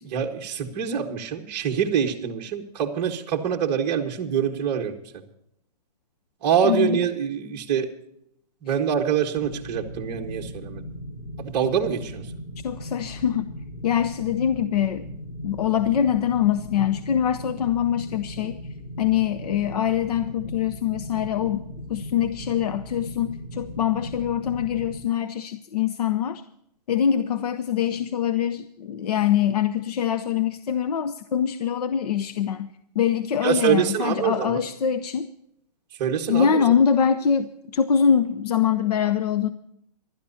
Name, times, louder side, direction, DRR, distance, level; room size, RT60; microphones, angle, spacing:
voice 1, 0.0-5.0 6.4-7.9 8.6-10.8 11.4-12.3 33.4-34.6 36.0-36.7, right 8 dB, 25° right, 1 dB, 1.7 m, -25 dB
voice 2, 6.6-7.0 12.6-13.5 13.8-15.1 15.4-18.6 19.0-26.4 26.9-35.3 36.3-39.5, left 8 dB, 70° left, 12 dB, 0.9 m, -24 dB
sound 1, 9.3-25.0, equal, 35° left, 4.8 m, -38 dB
25.5 x 12.5 x 2.8 m, 0.75 s
hypercardioid pair, 165°, 21 cm